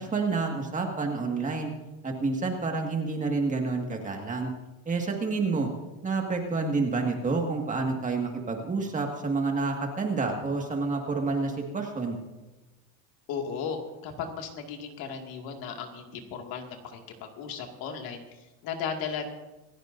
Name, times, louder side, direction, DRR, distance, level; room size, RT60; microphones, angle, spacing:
voice 1, 0.0-1.7 2.0-4.5 4.9-5.7 6.0-12.2, right 3 dB, 20° right, 2 dB, 1.9 m, -29 dB
voice 2, 13.3-19.2, left 6 dB, 60° left, 3 dB, 2.2 m, -36 dB
27.0 x 15.0 x 2.7 m, 1.1 s
cardioid pair, 160°, 41 cm